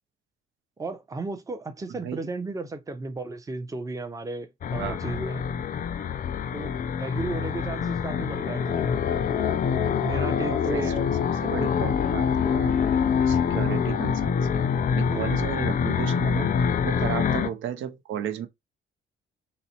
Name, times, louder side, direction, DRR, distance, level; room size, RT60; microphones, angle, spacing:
voice 1, 0.8-5.5 6.5-8.9 10.0-11.1 13.3-13.6 15.1-15.4 17.0-17.2, right 3 dB, 15° right, 0.6 m, -34 dB
sound 1, 4.6-17.5, left 7 dB, 40° left, 0.4 m, -25 dB
voice 2, 4.8-5.2 10.5-11.1 11.4-12.8 13.3-14.6 15.0-16.5 16.8-18.5, right 9 dB, 80° right, 0.6 m, -34 dB
4.1 x 2.1 x 2.8 m
cardioid pair, 90°, 20 cm